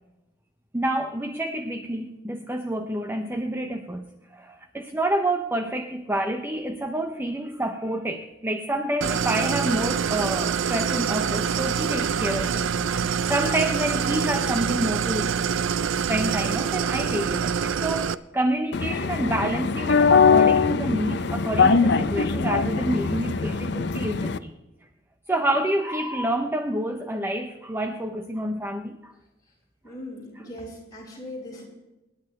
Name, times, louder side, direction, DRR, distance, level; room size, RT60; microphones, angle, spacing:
voice 1, 0.7-15.3 16.1-24.5 25.3-29.1, right 1 dB, 10° right, 5 dB, 0.7 m, -28 dB
Idling, 9.0-18.1, right 7 dB, 80° right, 0.5 m, -25 dB
U Bahn announcer Weinmeisterstrasse Berlin, 18.7-24.4, left 5 dB, 60° left, 0.6 m, -21 dB
voice 2, 29.8-31.7, left 1 dB, 20° left, -5 dB, 5.9 m, -39 dB
27.5 x 10.5 x 3.2 m, 1.0 s
head